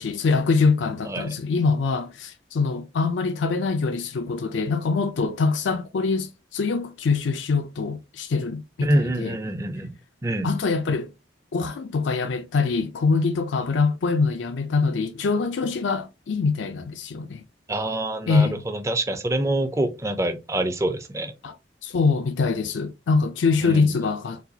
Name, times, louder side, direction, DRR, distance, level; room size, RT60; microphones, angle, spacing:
voice 1, 0.0-8.9 9.2-9.4 10.4-11.1 11.5-17.4 18.3-18.6 21.4-21.6 21.8-24.4, left 4 dB, 75° left, 0.4 m, -24 dB
voice 2, 8.8-9.9 10.2-10.5 17.7-21.3 23.6-23.9, right 1 dB, 15° right, 0.4 m, -26 dB
4.1 x 2.3 x 2.7 m
head